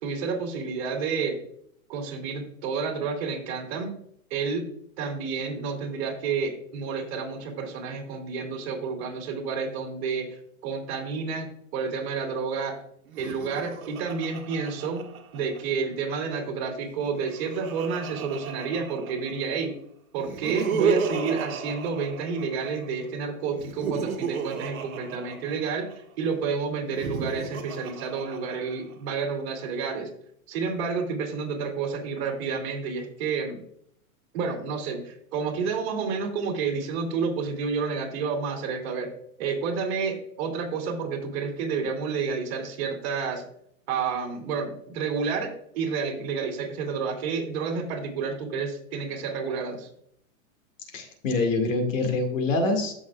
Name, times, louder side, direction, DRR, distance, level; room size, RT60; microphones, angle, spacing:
voice 1, 0.0-1.4 1.9-3.9 4.3-4.7 5.0-12.7 13.2-15.1 15.3-19.7 20.1-30.1 30.5-33.6 34.3-39.1 39.4-43.4 43.9-49.9, right 5 dB, 45° right, 1 dB, 2.9 m, -30 dB
Laughter, 13.1-15.8 16.9-19.5 20.2-22.9 23.5-25.9 26.8-28.9, right 6 dB, 75° right, 1.5 m, -33 dB
voice 2, 50.9-52.9, left 3 dB, 65° left, 5 dB, 2.3 m, -25 dB
14.5 x 6.2 x 2.5 m, 0.69 s
supercardioid pair, 160°, 42 cm